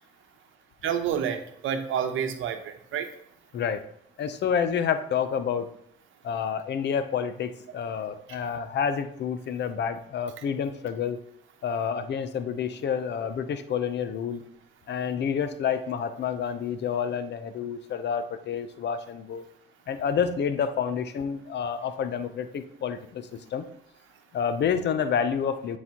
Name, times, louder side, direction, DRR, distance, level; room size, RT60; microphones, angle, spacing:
voice 1, 0.8-3.1 8.3-8.4, right 8 dB, 85° right, 7 dB, 0.8 m, -29 dB
voice 2, 4.2-5.7 6.2-11.2 11.6-14.4 14.9-19.4 19.9-23.7 24.3-25.8, left 7 dB, 60° left, 10 dB, 0.7 m, -29 dB
9.6 x 4.1 x 2.9 m, 0.71 s
cardioid pair, 90°, 20 cm